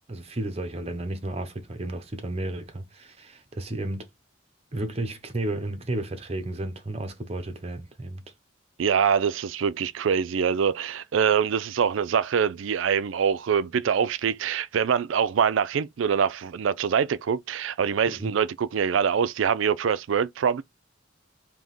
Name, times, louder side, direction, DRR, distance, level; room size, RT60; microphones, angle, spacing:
voice 1, 0.1-4.1 4.7-8.2 18.1-18.3, right 1 dB, 30° right, 0.8 m, -33 dB
voice 2, 8.8-20.6, right 7 dB, 80° right, 0.4 m, -24 dB
3.6 x 2.8 x 3.9 m
head